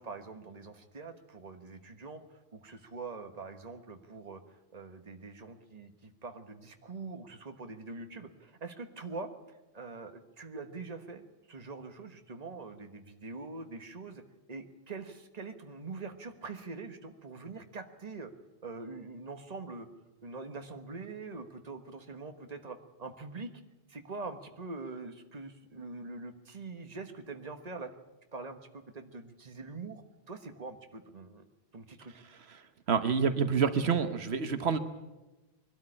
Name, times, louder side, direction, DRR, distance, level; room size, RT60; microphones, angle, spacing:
voice 1, 0.0-4.4 4.7-9.3 9.7-14.2 14.5-18.3 18.6-19.9 20.2-23.5 23.9-27.9 28.3-31.5 31.7-32.1, right 3 dB, 40° right, 7 dB, 1.5 m, -44 dB
voice 2, 32.9-34.8, right 6 dB, 85° right, 10 dB, 1.4 m, -27 dB
22.0 x 12.5 x 10.0 m, 1.1 s
omnidirectional pair, 1.1 m